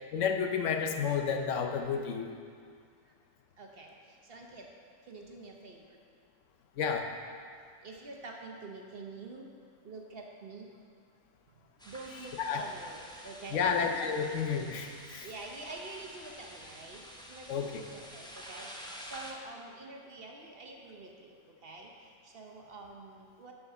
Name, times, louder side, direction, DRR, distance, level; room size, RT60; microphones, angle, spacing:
voice 1, 0.1-2.3 6.8-7.1 12.4-12.6 13.5-15.3 17.5-17.7, left 6 dB, 70° left, 4 dB, 1.0 m, -31 dB
voice 2, 3.6-4.7 5.0-6.0 7.8-9.5 9.8-10.7 11.8-13.7 15.2-17.5 17.9-23.5, right 3 dB, 50° right, 1 dB, 1.0 m, -47 dB
sound 1, 11.8-19.3, equal, 5° left, 0.5 m, -49 dB
8.8 x 4.7 x 6.7 m, 2.1 s
omnidirectional pair, 1.4 m